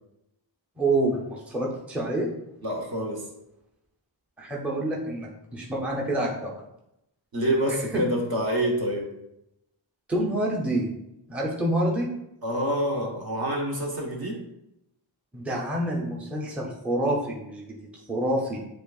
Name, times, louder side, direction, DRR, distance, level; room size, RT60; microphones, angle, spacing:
voice 1, 0.8-2.3 4.4-6.5 7.9-8.0 10.1-10.9 11.3-12.1 15.3-18.6, right 1 dB, 5° right, -3 dB, 0.6 m, -27 dB
voice 2, 2.6-3.2 7.3-9.1 12.4-14.4, equal, 50° right, -1 dB, 1.1 m, -27 dB
7.3 x 2.5 x 2.3 m, 0.85 s
wide cardioid pair, 100°, 47 cm